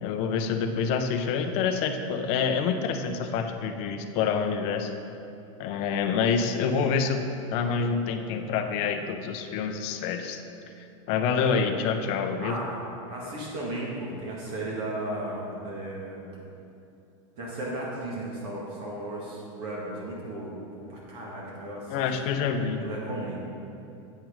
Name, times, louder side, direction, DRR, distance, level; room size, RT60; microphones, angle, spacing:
voice 1, 0.0-4.9 5.6-7.2 7.5-10.4 11.1-12.6 21.9-22.8, left 6 dB, 35° left, 6 dB, 0.6 m, -27 dB
voice 2, 7.6-8.5 12.4-12.7 13.1-16.3 17.4-22.3 22.8-23.4, right 1 dB, 50° right, -5 dB, 1.9 m, -36 dB
8.5 x 6.1 x 5.1 m, 2.8 s
supercardioid pair, 155°, 17 cm